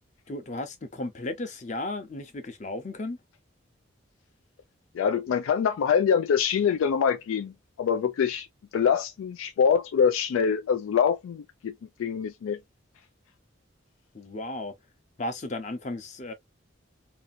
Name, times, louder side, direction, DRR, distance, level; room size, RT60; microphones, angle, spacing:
voice 1, 0.3-3.2 14.1-14.7 15.2-16.3, left 2 dB, 35° left, 0.6 m, -34 dB
voice 2, 4.9-7.5 7.8-8.5 8.7-11.7 12.0-12.6, left 7 dB, 90° left, 0.3 m, -24 dB
2.7 x 2.4 x 2.6 m
head